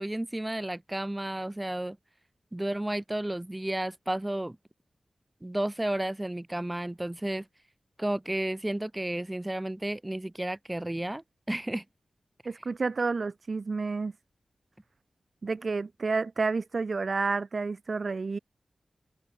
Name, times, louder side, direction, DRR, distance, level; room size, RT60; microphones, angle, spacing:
voice 1, 0.0-2.0 2.5-4.6 5.4-7.5 8.0-11.8, right 1 dB, 15° right, 7.3 m, -32 dB
voice 2, 12.5-14.1 15.4-18.4, right 4 dB, 50° right, 5.5 m, -30 dB
wide cardioid pair, 125°, 0 cm